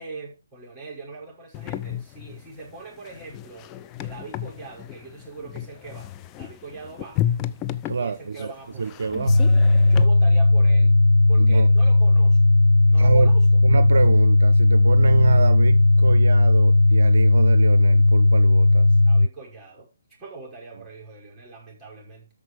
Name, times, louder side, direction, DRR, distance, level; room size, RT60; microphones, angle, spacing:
voice 1, 0.0-3.7 4.0-6.1 6.4-7.2 7.9-9.1 9.8-10.9 11.3-12.4 12.9-13.5 19.1-19.9 20.2-22.3, right 3 dB, 10° right, 5.8 m, -41 dB
sound 1, 1.5-10.0, left 11 dB, 20° left, 0.6 m, -32 dB
voice 2, 7.8-9.5 11.4-11.7 13.0-18.9, right 5 dB, 65° right, 0.7 m, -26 dB
sound 2, 9.3-19.3, left 2 dB, 90° left, 0.5 m, -16 dB
13.5 x 5.1 x 4.9 m
figure-of-eight pair, 135°, 0 cm